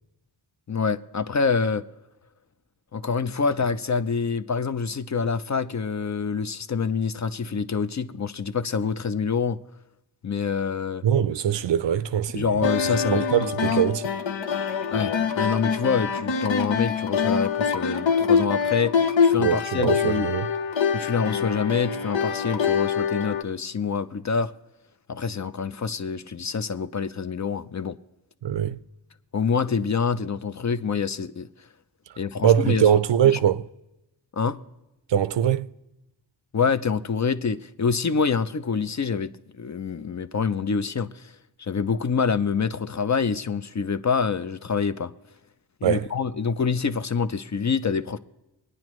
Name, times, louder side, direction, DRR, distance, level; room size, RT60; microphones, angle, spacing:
voice 1, 0.7-1.8 2.9-9.6 10.2-11.0 12.3-13.8 14.9-20.3 20.9-24.5 25.1-27.9 29.3-31.5 32.2-32.9 34.3-34.6 36.5-39.3 39.6-41.3 41.6-45.1 45.8-48.2, left 5 dB, 40° left, 0.5 m, -26 dB
voice 2, 11.0-12.5 13.1-14.1 19.4-20.5 28.4-28.8 32.4-33.7 35.1-35.7 45.8-46.1, right 9 dB, 75° right, 0.5 m, -22 dB
sound 1, 12.6-23.4, left 6 dB, 85° left, 0.8 m, -25 dB
23.5 x 9.6 x 3.1 m
wide cardioid pair, 80°, 44 cm